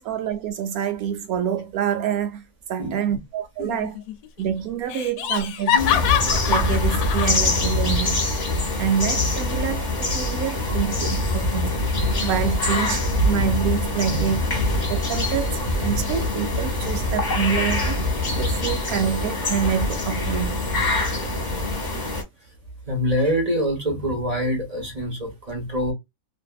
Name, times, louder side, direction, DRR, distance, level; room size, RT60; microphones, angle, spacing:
voice 1, 0.0-2.4 2.7-4.0 4.4-5.8 6.5-8.1 8.8-11.7 12.2-14.4 14.9-18.0 18.4-20.7, right 9 dB, 75° right, 1.0 m, -26 dB
voice 2, 2.8-3.2 5.3-5.4 5.7-6.0 10.6-10.7 14.1-14.3 18.7-18.8 22.4-22.5 22.9-25.9, equal, 30° right, 0.9 m, -26 dB
Laughter, 3.6-4.1 4.4-4.5 4.9-7.4, left 10 dB, 80° left, 1.1 m, -25 dB
sound 1, 5.8-22.2, left 2 dB, 30° left, 1.0 m, -24 dB
2.6 x 2.6 x 2.3 m
omnidirectional pair, 1.6 m